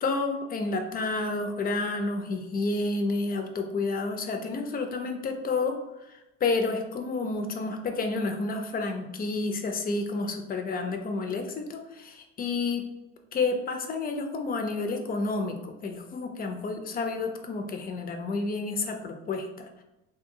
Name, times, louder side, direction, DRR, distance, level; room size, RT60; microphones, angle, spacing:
voice 1, 0.0-5.8 6.1-12.8 13.3-19.8, left 3 dB, 25° left, 5 dB, 0.4 m, -30 dB
2.6 x 2.2 x 2.6 m, 0.95 s
supercardioid pair, 85°, 35 cm